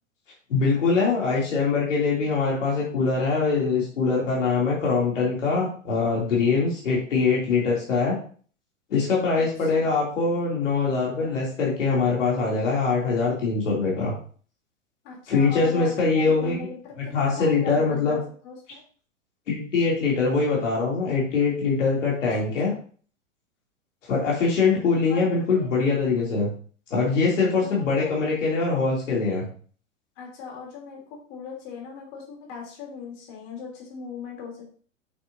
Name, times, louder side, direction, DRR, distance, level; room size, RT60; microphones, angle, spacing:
voice 1, 0.5-8.2 8.9-14.1 15.3-16.7 17.1-18.2 19.5-22.7 24.1-26.5 26.9-29.5, left 4 dB, 70° left, -3 dB, 2.7 m, -23 dB
voice 2, 9.3-9.9 15.0-18.8 22.6-22.8 25.1-25.7 27.5-28.1 30.2-34.6, left 5 dB, 45° left, -1 dB, 3.1 m, -39 dB
8.3 x 6.1 x 2.6 m, 0.44 s
hypercardioid pair, 110°, 39 cm